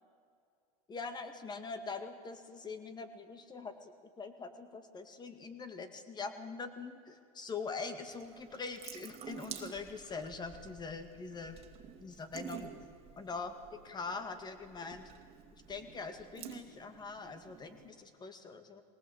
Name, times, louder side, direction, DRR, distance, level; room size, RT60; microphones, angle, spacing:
voice 1, 0.9-3.9 4.2-11.6 12.0-12.7 13.2-13.5 13.9-15.1 15.7-18.8, left 4 dB, 20° left, 9 dB, 2.1 m, -43 dB
Water tap faucet / Sink (filling or washing) / Drip, 8.1-17.9, right 8 dB, 30° right, 2.3 m, -51 dB
21.5 x 18.5 x 8.1 m, 2.4 s
supercardioid pair, 120°, 19 cm